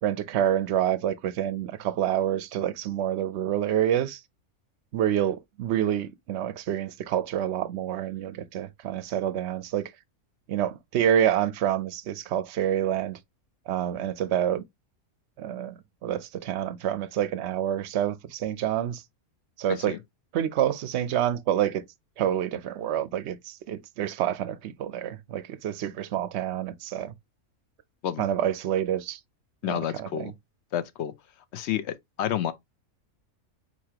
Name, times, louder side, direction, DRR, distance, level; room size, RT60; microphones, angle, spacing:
voice 1, 0.0-4.2 4.9-9.9 10.5-13.2 13.7-14.6 15.4-19.0 19.6-20.0 20.3-21.8 22.2-27.1 28.2-29.2 29.6-30.3, right 10 dB, 60° right, 0.8 m, -27 dB
voice 2, 19.7-20.0 28.0-28.2 29.6-30.3 30.7-31.1 31.5-32.5, left 10 dB, 60° left, 0.8 m, -30 dB
5.9 x 2.9 x 2.8 m
omnidirectional pair, 1.5 m